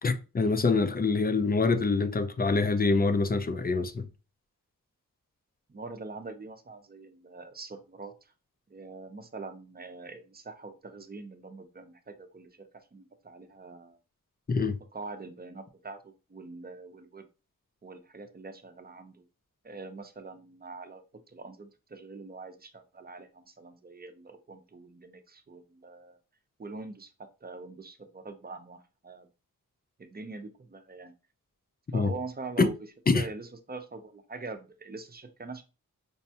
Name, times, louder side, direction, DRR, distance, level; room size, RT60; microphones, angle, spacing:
voice 1, 0.0-4.1 14.5-14.8 31.9-32.1 32.6-32.7 33.1-33.3, left 3 dB, 30° left, 0.4 m, -25 dB
voice 2, 5.7-8.1 8.7-14.0 14.9-17.2 17.8-19.2 19.6-26.2 26.6-29.3 30.0-31.1 31.9-32.8 33.1-35.6, right 3 dB, 30° right, 0.6 m, -44 dB
5.3 x 2.2 x 2.8 m
wide cardioid pair, 80°, 33 cm